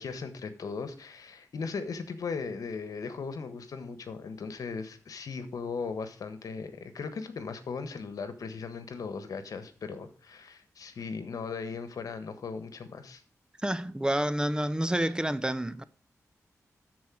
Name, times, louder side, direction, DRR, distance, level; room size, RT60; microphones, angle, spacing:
voice 1, 0.0-13.2, left 5 dB, 80° left, 1.3 m, -38 dB
voice 2, 13.6-15.8, right 1 dB, 15° right, 0.6 m, -29 dB
12.5 x 4.6 x 6.1 m
cardioid pair, 60°, 6 cm